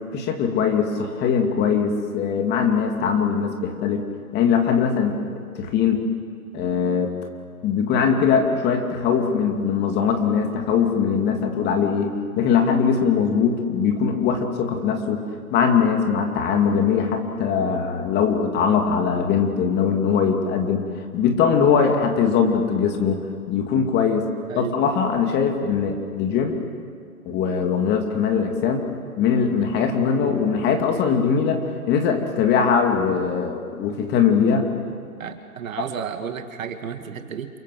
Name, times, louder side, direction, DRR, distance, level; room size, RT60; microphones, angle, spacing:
voice 1, 0.1-4.1 4.3-6.0 6.5-7.1 7.6-15.2 15.5-20.8 21.1-24.3 24.6-26.6 27.2-28.9 29.2-34.7 35.8-35.9, left 6 dB, 20° left, 4 dB, 2.6 m, -21 dB
voice 2, 24.5-24.8 35.2-37.6, right 7 dB, 60° right, 7 dB, 2.6 m, -32 dB
28.0 x 23.5 x 7.7 m, 2.2 s
hypercardioid pair, 140°, 45 cm